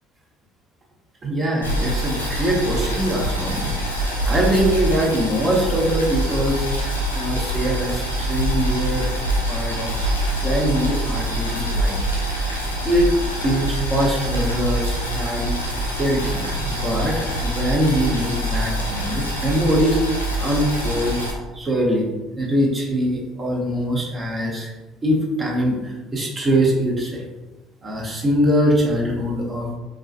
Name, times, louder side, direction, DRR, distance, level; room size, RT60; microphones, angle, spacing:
voice 1, 1.2-3.7 4.3-6.7 7.1-9.1 9.5-10.1 10.4-12.0 12.8-13.1 13.4-15.5 16.0-17.1 17.4-21.2 21.5-22.0 22.4-24.7 25.0-27.2 27.8-29.7, right 1 dB, 30° right, -3 dB, 0.9 m, -22 dB
Boiling, 1.6-21.3, equal, 90° left, 0.5 m, -25 dB
4.6 x 2.3 x 2.5 m, 1.2 s
figure-of-eight pair, 55°, 0 cm